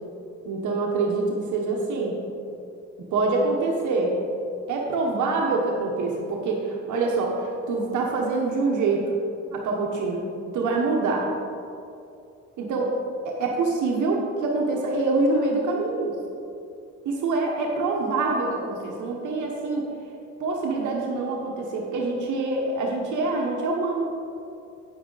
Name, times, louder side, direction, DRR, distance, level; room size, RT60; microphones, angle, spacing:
voice 1, 0.4-2.2 3.0-4.2 4.7-9.1 9.5-10.2 10.5-11.3 12.6-12.9 13.2-16.2 17.0-19.9 20.4-24.1, right 3 dB, 75° right, -1 dB, 1.2 m, -25 dB
9.0 x 7.7 x 4.0 m, 2.6 s
cardioid pair, 90°, 30 cm